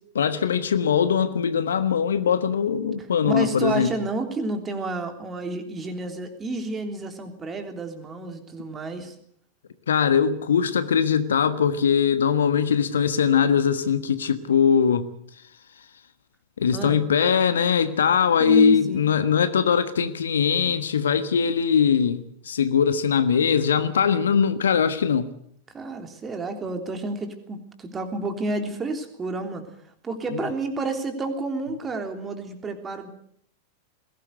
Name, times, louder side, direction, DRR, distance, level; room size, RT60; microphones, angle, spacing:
voice 1, 0.1-3.9 9.9-15.1 16.6-25.3 30.3-30.4, left 7 dB, 65° left, 1.4 m, -21 dB
voice 2, 3.2-9.1 16.7-17.0 18.4-19.1 25.7-29.7 30.0-33.1, right 3 dB, 20° right, 3.4 m, -30 dB
21.0 x 18.0 x 8.1 m
figure-of-eight pair, 90°, 0 cm